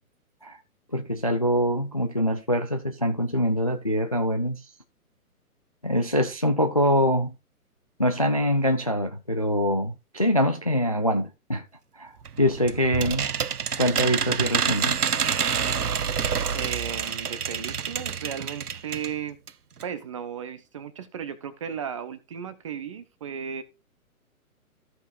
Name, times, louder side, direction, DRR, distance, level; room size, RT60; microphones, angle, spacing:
voice 1, 0.9-4.6 5.8-7.3 8.0-11.6 12.0-12.1 12.4-13.3 13.8-15.0, equal, 25° left, 0.4 m, -24 dB
sound 1, 12.2-19.1 19.5-19.6 19.8-19.9, right 7 dB, 90° right, 0.6 m, -27 dB
voice 2, 16.5-19.4 19.8-23.6, right 8 dB, 20° right, 0.6 m, -35 dB
14.5 x 5.5 x 2.5 m
figure-of-eight pair, 130°, 44 cm